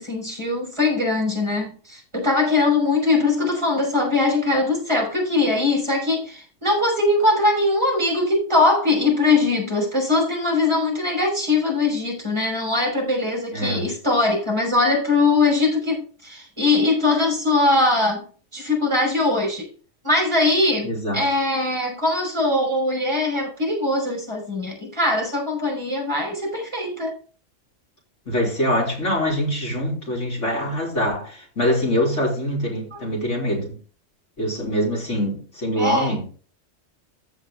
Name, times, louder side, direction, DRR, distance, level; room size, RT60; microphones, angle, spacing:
voice 1, 0.0-18.3 18.5-19.7 20.0-27.2 32.9-33.0 35.8-36.2, left 2 dB, 20° right, 5.4 m, -21 dB
voice 2, 13.5-13.9 20.8-21.2 28.3-33.8 34.4-36.3, equal, 70° left, 4.1 m, -24 dB
14.5 x 5.1 x 3.7 m
omnidirectional pair, 1.3 m